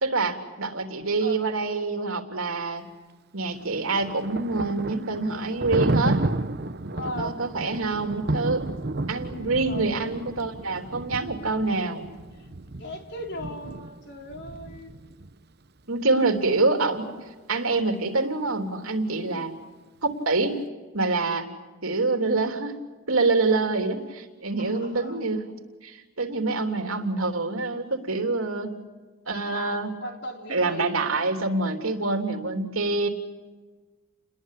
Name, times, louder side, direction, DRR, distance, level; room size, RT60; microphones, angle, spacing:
voice 1, 0.0-2.8 3.3-6.2 7.0-8.7 9.1-12.1 15.9-17.1 17.5-19.5 20.2-20.6 20.9-21.5 21.8-22.8 23.1-25.4 25.8-28.7 29.3-29.9 30.5-33.1, right 3 dB, 75° right, 5 dB, 3.4 m, -26 dB
Thunder, 3.5-15.3, right 2 dB, 50° right, 1.0 m, -32 dB
voice 2, 6.9-7.4 9.7-9.9 12.4-15.0 19.3-19.5 24.6-25.2 29.5-30.9, left 1 dB, 55° left, 2 dB, 4.4 m, -38 dB
30.0 x 21.0 x 8.4 m, 1.3 s
head